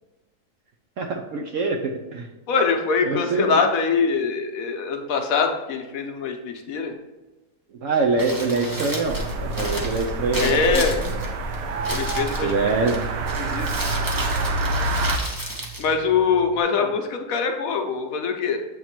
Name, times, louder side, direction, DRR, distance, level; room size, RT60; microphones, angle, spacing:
voice 1, 1.0-2.3 3.1-3.6 7.8-10.8 12.4-13.0, right 3 dB, 70° right, 1 dB, 0.7 m, -24 dB
voice 2, 2.5-6.9 10.4-11.0 11.9-12.7 13.4-13.7 15.8-18.6, left 5 dB, 65° left, 4 dB, 1.0 m, -23 dB
Crumpling crinkling, 8.0-16.6, right 1 dB, 25° right, 0.5 m, -33 dB
sound 1, 9.0-15.2, right 2 dB, 85° right, 1.3 m, -27 dB
7.9 x 3.0 x 4.4 m, 1.1 s
omnidirectional pair, 1.8 m